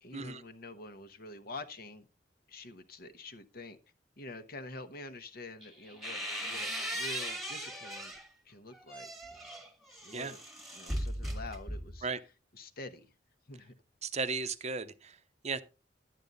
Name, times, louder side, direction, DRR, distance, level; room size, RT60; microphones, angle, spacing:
voice 1, 0.0-2.1 2.5-3.8 4.2-8.2 8.4-9.5 10.0-10.4 10.7-12.1 12.5-13.1 13.5-13.7, left 2 dB, 55° left, 1.1 m, -47 dB
sound 1, 5.6-8.3 8.7-12.1, equal, ahead, 1.4 m, -38 dB
voice 2, 14.0-15.2 15.4-15.6, right 4 dB, 40° right, 0.7 m, -35 dB
11.0 x 8.9 x 4.0 m
head